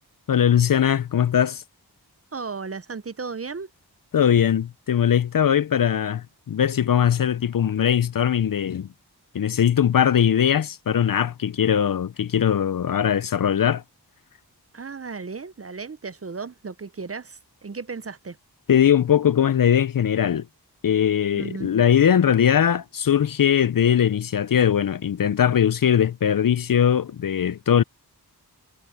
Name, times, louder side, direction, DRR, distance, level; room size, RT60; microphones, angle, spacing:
voice 1, 0.3-1.6 4.1-8.9 9.3-13.8 18.7-20.5 20.8-27.8, left 9 dB, 55° left, 0.5 m, -20 dB
voice 2, 2.3-3.7 14.7-18.4 21.4-21.7, right 4 dB, 35° right, 0.6 m, -35 dB
wide cardioid pair, 50°, 40 cm